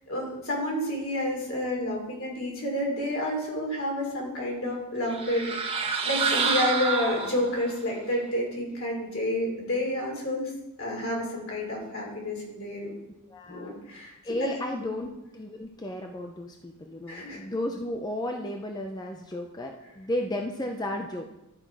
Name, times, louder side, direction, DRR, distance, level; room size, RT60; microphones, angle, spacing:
voice 1, 0.1-10.5 10.8-12.9 13.5-14.1 14.4-14.5 14.8-15.1 17.1-17.4, left 1 dB, 70° left, -2 dB, 3.1 m, -30 dB
sound 1, 5.1-7.7, right 5 dB, 25° right, 1.1 m, -28 dB
voice 2, 13.3-13.8 14.2-21.3, left 1 dB, 20° left, 3 dB, 0.6 m, -33 dB
12.0 x 5.8 x 4.7 m, 0.93 s
head